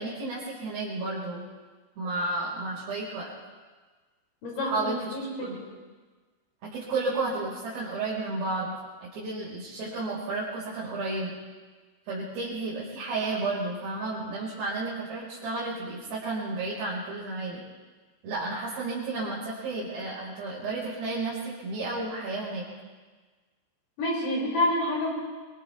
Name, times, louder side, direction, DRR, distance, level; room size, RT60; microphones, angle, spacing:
voice 1, 0.0-1.5 2.0-3.3 4.6-5.6 6.7-8.8 9.0-11.3 12.1-17.6 18.2-22.7, right 3 dB, 75° right, -8 dB, 7.3 m, -32 dB
voice 2, 4.4-5.7 24.0-25.1, left 1 dB, 50° left, -4 dB, 7.9 m, -28 dB
29.0 x 25.5 x 3.5 m, 1.4 s
omnidirectional pair, 4.9 m